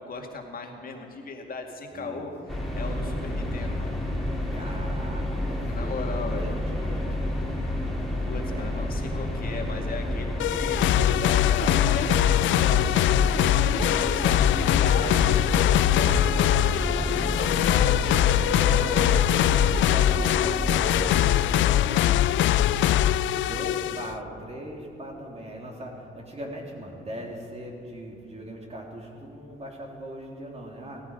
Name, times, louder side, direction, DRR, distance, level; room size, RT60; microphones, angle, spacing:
voice 1, 0.0-3.9 4.6-4.8 5.6-6.5 8.2-12.8 13.3-18.3 23.6-23.9, left 4 dB, 45° left, 2 dB, 2.1 m, -37 dB
voice 2, 1.9-2.7 4.5-7.4 8.3-9.1 13.2-14.5 15.0-15.1 16.9-18.1 18.5-22.8 23.3-31.0, right 1 dB, 30° right, 0 dB, 3.1 m, -40 dB
sound 1, 2.5-21.2, left 1 dB, ahead, 3.1 m, -30 dB
sound 2, 10.4-24.1, left 12 dB, 75° left, 0.4 m, -22 dB
17.0 x 14.5 x 5.2 m, 2.6 s
cardioid pair, 90°, 20 cm